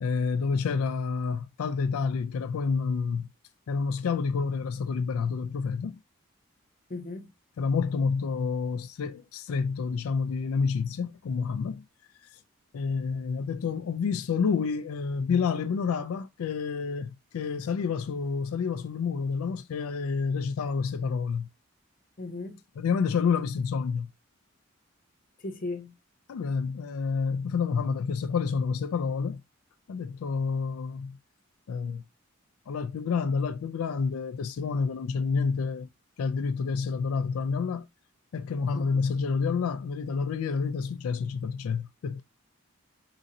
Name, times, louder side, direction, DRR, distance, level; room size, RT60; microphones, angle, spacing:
voice 1, 0.0-3.3 3.7-6.0 7.6-11.8 12.2-12.4 12.7-21.5 22.8-24.1 26.3-29.4 29.9-31.2 31.7-32.0 32.7-35.9 36.2-37.9 38.3-42.2, left 5 dB, 90° left, 0.4 m, -29 dB
voice 2, 6.9-7.3 22.2-22.6 25.4-25.9 38.7-39.0, left 2 dB, 40° left, 0.6 m, -37 dB
3.8 x 2.6 x 4.1 m
head